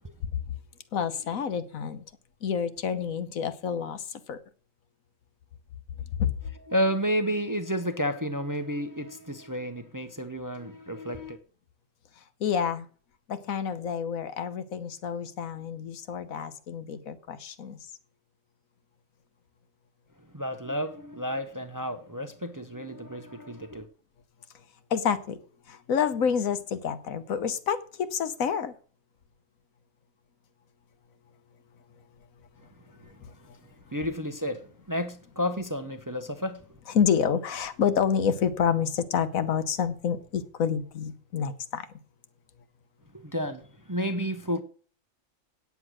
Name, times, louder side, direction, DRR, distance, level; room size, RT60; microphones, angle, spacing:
voice 1, 0.9-2.0 2.4-4.4 6.2-6.3 12.4-12.9 13.3-17.8 24.9-25.4 25.7-28.7 33.2-33.3 36.9-41.9, left 7 dB, 80° left, 1.4 m, -28 dB
voice 2, 6.7-11.4 20.3-23.9 33.9-34.6 34.9-36.6 43.2-43.6 43.9-44.6, equal, 20° right, 0.7 m, -31 dB
9.4 x 8.2 x 6.2 m
omnidirectional pair, 1.4 m